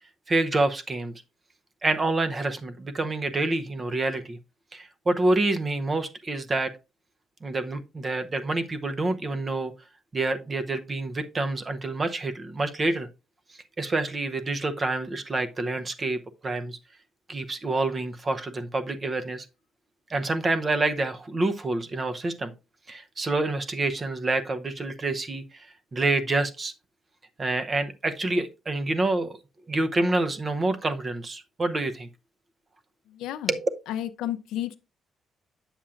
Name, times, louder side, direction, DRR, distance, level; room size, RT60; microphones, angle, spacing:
voice 1, 0.3-1.1 1.8-4.4 4.7-6.7 7.4-9.7 10.1-13.1 13.8-16.8 17.3-19.5 20.1-22.5 22.9-26.7 27.4-29.4 29.7-32.1 33.5-33.6, right 2 dB, 35° right, 0.7 m, -27 dB
voice 2, 33.1-33.6 33.9-34.7, left 12 dB, 90° left, 0.5 m, -32 dB
8.5 x 7.2 x 2.5 m
cardioid pair, 90°, 0 cm